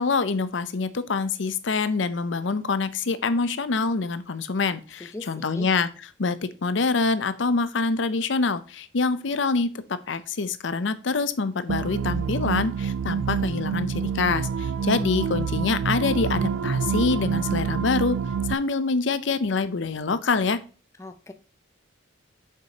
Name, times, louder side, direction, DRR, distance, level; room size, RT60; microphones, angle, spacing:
voice 1, 0.0-5.9 6.2-9.7 10.1-18.2 18.5-20.6, left 4 dB, 65° left, 13 dB, 0.6 m, -25 dB
voice 2, 5.0-5.7 21.0-21.3, left 2 dB, 15° left, 7 dB, 0.4 m, -39 dB
sound 1, 11.7-18.5, right 6 dB, 90° right, 0.3 m, -27 dB
6.6 x 4.0 x 4.9 m, 0.36 s
head